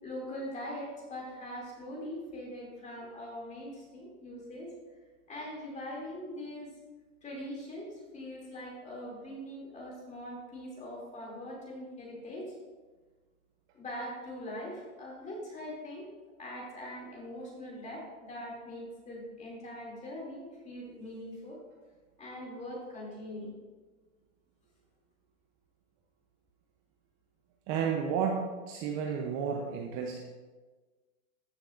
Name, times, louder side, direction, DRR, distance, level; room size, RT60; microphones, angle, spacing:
voice 1, 0.0-4.7 5.3-6.7 7.2-12.5 13.7-16.1 16.4-21.6 22.2-23.5, left 1 dB, 15° left, -3 dB, 2.8 m, -42 dB
voice 2, 27.7-30.2, right 6 dB, 30° right, 0 dB, 0.8 m, -32 dB
14.0 x 6.4 x 2.6 m, 1.3 s
hypercardioid pair, 135°, 44 cm